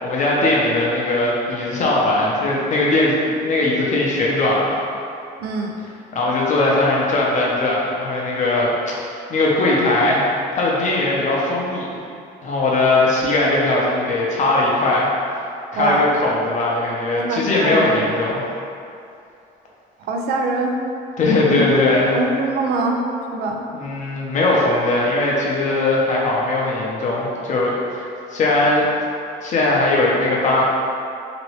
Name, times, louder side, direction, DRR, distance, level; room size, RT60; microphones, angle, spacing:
voice 1, 0.0-4.8 6.1-10.2 10.5-11.9 12.4-15.1 15.7-18.4 21.2-22.2 23.7-28.1 28.3-28.9 29.4-30.7, left 2 dB, 45° left, -4 dB, 0.7 m, -19 dB
voice 2, 5.4-5.7 15.7-16.1 17.1-18.1 20.1-20.8 21.5-21.6 22.1-23.0 23.3-23.7, right 3 dB, 70° right, 2 dB, 0.4 m, -23 dB
3.0 x 2.7 x 3.1 m, 2.5 s
cardioid pair, 110°, 17 cm